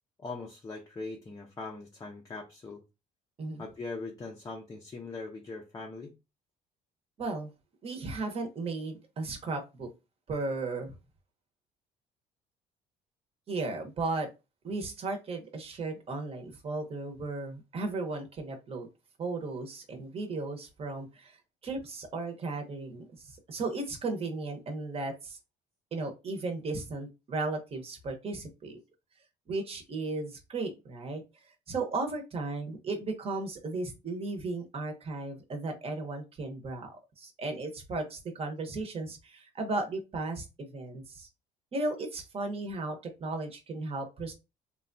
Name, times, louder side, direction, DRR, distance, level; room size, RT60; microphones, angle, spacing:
voice 1, 0.2-2.8 3.6-6.1, left 3 dB, 20° left, 0 dB, 0.5 m, -41 dB
voice 2, 7.2-7.5 7.8-9.9 10.3-10.9 13.5-14.3 14.6-18.9 19.2-21.4 21.6-25.4 25.9-28.8 29.5-31.2 31.7-41.3 41.7-44.3, right 3 dB, 35° right, 4 dB, 0.8 m, -35 dB
3.2 x 2.2 x 2.6 m, 0.26 s
cardioid pair, 110°, 17 cm